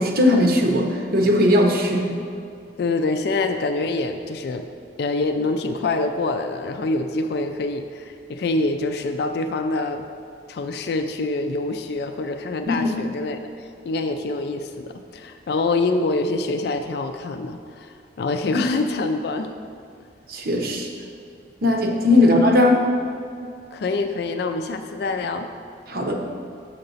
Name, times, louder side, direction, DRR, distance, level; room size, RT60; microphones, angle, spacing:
voice 1, 0.0-2.1 12.7-12.9 18.5-18.6 20.3-20.9 21.6-22.9 25.9-26.2, left 1 dB, 55° right, 2 dB, 0.8 m, -18 dB
voice 2, 2.8-4.7 5.0-10.1 10.5-19.5 23.7-25.5, left 3 dB, 60° left, 7 dB, 0.3 m, -25 dB
6.7 x 5.8 x 4.0 m, 2.4 s
head